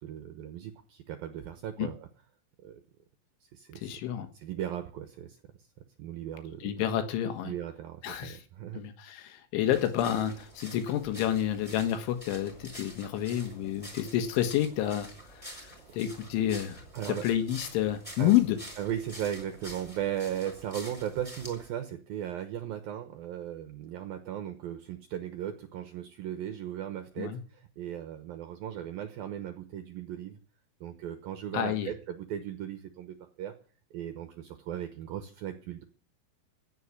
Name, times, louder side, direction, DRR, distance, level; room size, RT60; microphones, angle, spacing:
voice 1, 0.0-2.1 2.6-2.8 3.5-3.9 4.3-5.4 6.0-6.9 7.4-8.8 15.9-16.0 16.9-17.2 18.2-18.3 18.8-30.4 30.8-33.5 33.9-35.8, right 10 dB, 70° right, 8 dB, 2.2 m, -37 dB
voice 2, 3.8-4.3 6.6-7.5 8.0-8.4 8.7-15.1 15.6-16.8 17.2-18.6 27.2-27.4 31.5-31.9, left 11 dB, 75° left, 9 dB, 3.7 m, -29 dB
sound 1, 9.7-21.7, equal, 5° left, 5.8 m, -48 dB
16.0 x 7.1 x 9.8 m, 0.43 s
omnidirectional pair, 5.7 m